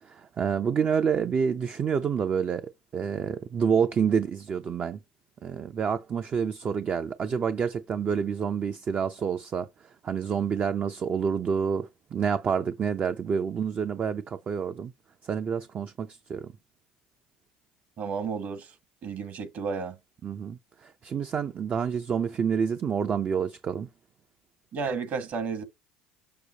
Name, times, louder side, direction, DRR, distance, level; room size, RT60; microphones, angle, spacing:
voice 1, 0.0-5.0 5.4-14.9 15.2-16.5 20.2-23.9, right 7 dB, 40° right, 0.6 m, -28 dB
voice 2, 18.0-18.7 19.0-20.0 24.7-25.6, right 5 dB, 55° right, 1.9 m, -32 dB
6.8 x 6.1 x 2.9 m
hypercardioid pair, 75°, 4 cm